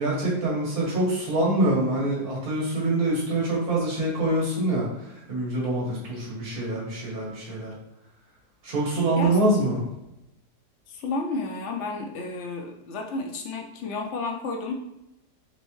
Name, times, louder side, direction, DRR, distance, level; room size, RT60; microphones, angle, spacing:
voice 1, 0.0-7.7 8.6-9.8, right 1 dB, 70° right, -4 dB, 2.0 m, -25 dB
voice 2, 10.9-14.7, left 3 dB, 65° left, 2 dB, 0.7 m, -31 dB
4.1 x 3.5 x 3.1 m, 0.87 s
omnidirectional pair, 1.7 m